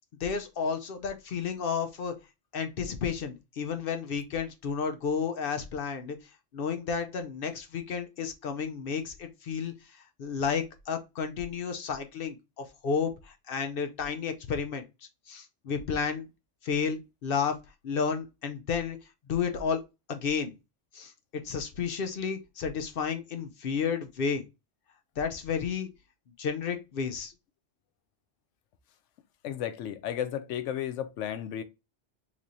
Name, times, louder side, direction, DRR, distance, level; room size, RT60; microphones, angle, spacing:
voice 1, 0.2-2.1 2.5-6.2 6.5-16.3 16.6-17.6 17.8-19.0 19.3-19.8 20.1-20.6 20.9-24.4 25.2-25.9 26.4-27.3, left 6 dB, 60° left, 0.7 m, -32 dB
voice 2, 29.4-31.6, left 10 dB, 85° left, 0.9 m, -33 dB
3.5 x 3.1 x 2.6 m
omnidirectional pair, 1.2 m